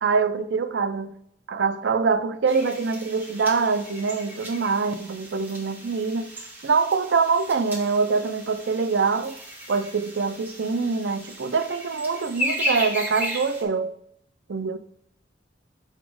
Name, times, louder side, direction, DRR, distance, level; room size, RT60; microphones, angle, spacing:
voice 1, 0.0-1.1 1.5-6.3 6.6-9.4 9.7-13.9 14.5-14.8, right 4 dB, 70° right, 0.5 m, -24 dB
sound 1, 2.5-13.6, equal, 10° right, 1.8 m, -35 dB
6.9 x 4.1 x 4.7 m
head